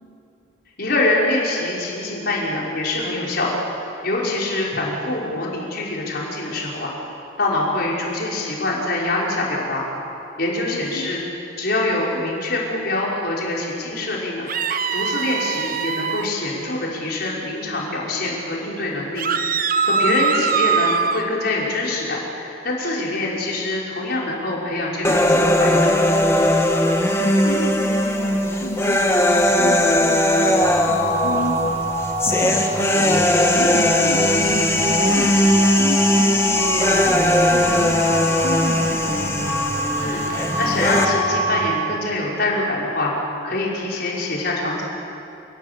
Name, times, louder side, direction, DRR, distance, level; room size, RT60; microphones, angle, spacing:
voice 1, 0.8-3.6 4.0-6.9 7.4-9.9 10.4-11.2 11.6-14.5 14.9-25.9 40.0-43.1 43.4-44.8, left 2 dB, 50° left, -4 dB, 5.9 m, -24 dB
sound 1, 14.5-16.3 19.2-21.2, right 5 dB, 45° right, 0.9 m, -22 dB
voice 2, 20.1-20.4 27.2-30.6 30.9-31.8 32.2-33.2 33.5-37.1 37.5-39.4, left 1 dB, 90° left, -4 dB, 3.5 m, -32 dB
sound 2, 25.0-41.1, left 1 dB, 15° left, 1.6 m, -19 dB
sound 3, 30.6-41.6, equal, 10° right, 6.4 m, -26 dB
28.5 x 18.5 x 8.7 m, 2.9 s
head